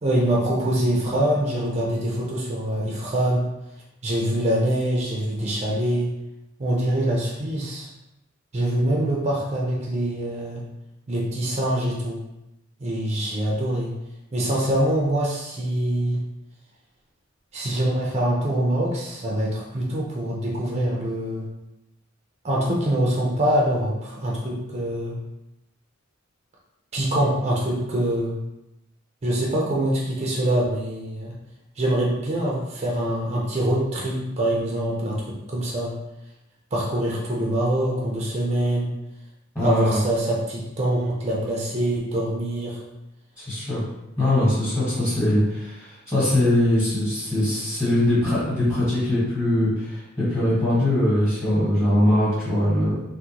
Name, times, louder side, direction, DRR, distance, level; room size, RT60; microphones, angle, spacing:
voice 1, 0.0-3.5 4.0-6.1 6.6-7.9 8.5-10.6 11.1-12.2 12.8-13.9 14.3-16.2 17.5-21.5 22.4-25.1 26.9-28.4 29.2-31.3 31.8-35.9 36.7-38.9 39.6-42.8, right 1 dB, 30° right, -3 dB, 0.5 m, -24 dB
voice 2, 39.5-40.0 43.4-43.8 44.2-53.0, left 1 dB, 15° left, -10 dB, 1.2 m, -21 dB
3.6 x 2.2 x 2.8 m, 0.90 s
head